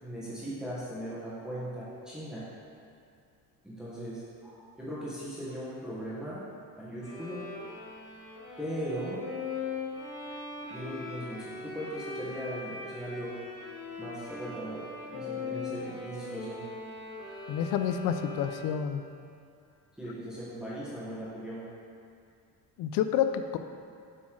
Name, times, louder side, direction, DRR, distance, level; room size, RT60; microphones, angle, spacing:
voice 1, 0.0-2.4 3.6-6.4 6.8-7.4 8.6-9.2 10.7-13.3 14.0-16.6 20.0-21.7, equal, ahead, -9 dB, 1.4 m, -38 dB
Bowed string instrument, 7.0-18.9, left 3 dB, 40° left, 1.5 m, -40 dB
voice 2, 17.5-19.0 22.8-23.6, left 9 dB, 60° left, 9 dB, 0.5 m, -29 dB
7.5 x 4.3 x 4.7 m, 2.5 s
cardioid pair, 135°, 36 cm